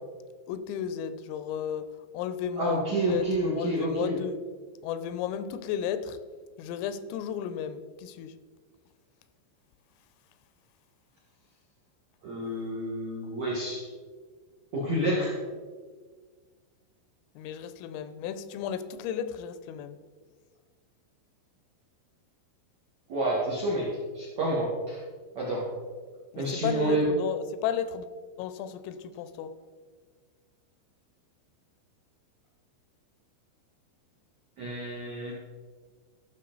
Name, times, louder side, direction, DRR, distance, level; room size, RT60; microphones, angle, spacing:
voice 1, 0.5-1.9 2.1-3.2 3.5-4.4 4.8-6.2 6.6-8.3 17.4-20.0 26.3-28.1 28.4-29.5, left 9 dB, 90° left, 12 dB, 3.3 m, -33 dB
voice 2, 2.6-4.2 12.2-13.9 14.7-15.4 23.1-25.0 25.3-25.7 26.3-27.0 34.6-35.3, right 1 dB, 65° right, -6 dB, 1.8 m, -29 dB
14.5 x 6.5 x 3.9 m, 1.5 s
omnidirectional pair, 5.8 m